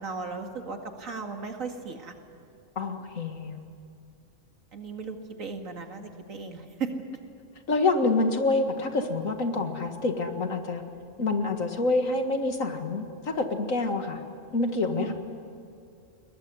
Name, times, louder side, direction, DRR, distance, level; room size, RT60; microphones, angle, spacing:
voice 1, 0.0-2.1 4.7-6.9 14.9-15.1, right 5 dB, 90° right, 4 dB, 2.5 m, -36 dB
voice 2, 2.8-3.6 7.7-10.8 11.2-14.2 14.5-15.1, left 3 dB, 85° left, 5 dB, 2.3 m, -27 dB
22.5 x 19.5 x 9.6 m, 2.5 s
omnidirectional pair, 1.4 m